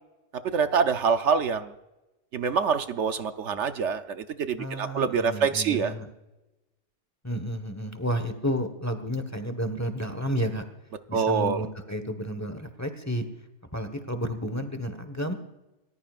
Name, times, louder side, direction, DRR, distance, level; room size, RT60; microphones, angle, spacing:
voice 1, 0.5-1.7 2.3-5.9 11.1-11.6, right 6 dB, 65° right, 9 dB, 1.0 m, -25 dB
voice 2, 4.6-6.1 7.2-10.6 11.1-13.2 13.7-15.3, equal, 15° left, 8 dB, 1.2 m, -31 dB
28.5 x 14.5 x 2.5 m, 1.0 s
omnidirectional pair, 1.3 m